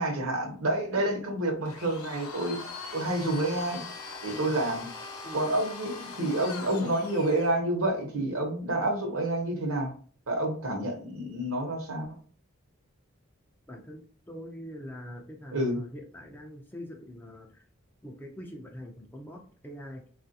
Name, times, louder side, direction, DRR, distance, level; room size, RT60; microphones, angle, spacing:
voice 1, 0.0-2.6 2.9-3.8 4.2-4.9 5.3-9.9 10.3-12.1 15.5-15.8, right 1 dB, 70° right, 2 dB, 0.9 m, -29 dB
Domestic sounds home sounds, 1.7-7.5, left 4 dB, 85° left, 0.7 m, -41 dB
voice 2, 5.2-5.6 13.7-17.6 18.0-20.0, equal, 10° left, 1 dB, 0.3 m, -43 dB
3.1 x 2.4 x 2.6 m, 0.43 s
head